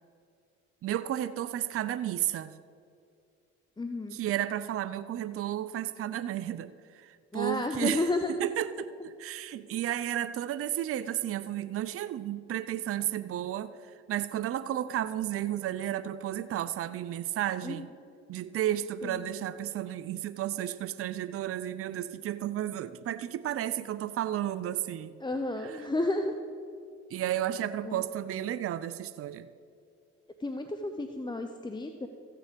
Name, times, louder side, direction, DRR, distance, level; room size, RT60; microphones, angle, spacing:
voice 1, 0.8-2.5 4.1-8.1 8.4-17.9 18.3-25.1 25.6-25.8 27.1-29.5, right 12 dB, 50° right, 13 dB, 0.5 m, -33 dB
voice 2, 3.8-4.2 7.3-8.3 17.6-17.8 19.0-19.2 25.2-26.3 27.8-28.0 30.4-32.1, left 2 dB, 15° left, 6 dB, 0.8 m, -32 dB
15.0 x 6.7 x 5.2 m, 2.4 s
supercardioid pair, 60°, 30 cm